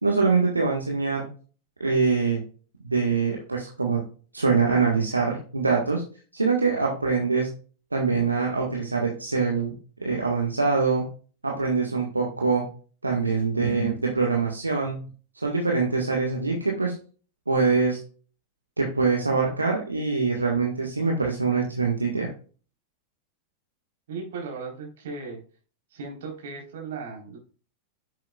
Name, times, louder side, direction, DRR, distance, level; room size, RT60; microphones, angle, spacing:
voice 1, 0.0-1.3 1.8-2.4 2.8-4.0 4.3-6.0 6.3-7.5 7.9-9.7 10.0-11.1 11.4-12.7 13.0-15.0 15.3-17.0 17.5-18.0 18.8-22.3, right 4 dB, 80° right, -1 dB, 1.7 m, -24 dB
voice 2, 24.1-25.4 25.9-27.4, right 4 dB, 60° right, 0 dB, 4.1 m, -36 dB
10.5 x 7.6 x 2.4 m, 0.39 s
figure-of-eight pair, 90°, 0 cm